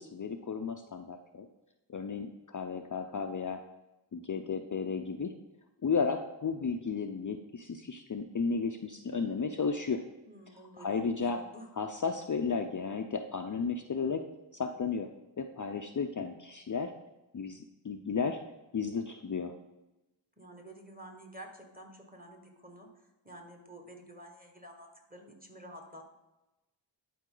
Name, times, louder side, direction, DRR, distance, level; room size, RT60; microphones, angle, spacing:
voice 1, 0.0-1.5 1.9-3.6 4.1-5.3 5.8-10.0 10.8-11.4 11.8-14.2 14.5-15.1 15.4-16.9 17.3-18.4 18.7-19.5, left 5 dB, 40° left, 5 dB, 0.5 m, -33 dB
voice 2, 10.3-11.7 20.4-26.0, right 1 dB, 20° right, 3 dB, 1.5 m, -50 dB
11.0 x 4.3 x 3.8 m, 1.0 s
wide cardioid pair, 45°, 49 cm